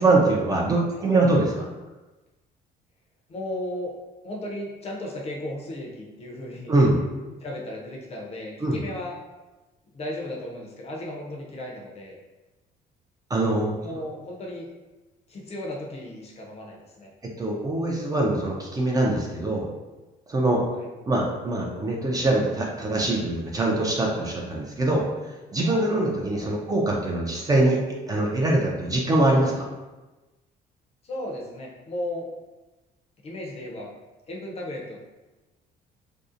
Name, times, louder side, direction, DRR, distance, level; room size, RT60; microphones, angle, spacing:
voice 1, 0.0-1.6 6.7-7.0 8.6-8.8 13.3-13.7 17.4-19.7 20.3-20.6 21.1-25.0 25.5-27.8 28.1-29.7, right 2 dB, 20° right, -2 dB, 0.4 m, -23 dB
voice 2, 3.3-3.9 4.2-6.7 7.4-9.2 9.9-12.2 13.8-14.7 15.3-17.1 20.7-20.9 26.4-26.6 31.0-32.3 33.2-33.9 34.3-35.0, left 1 dB, 40° left, -1 dB, 0.6 m, -35 dB
2.6 x 2.0 x 2.5 m, 1.1 s
cardioid pair, 110°, 17 cm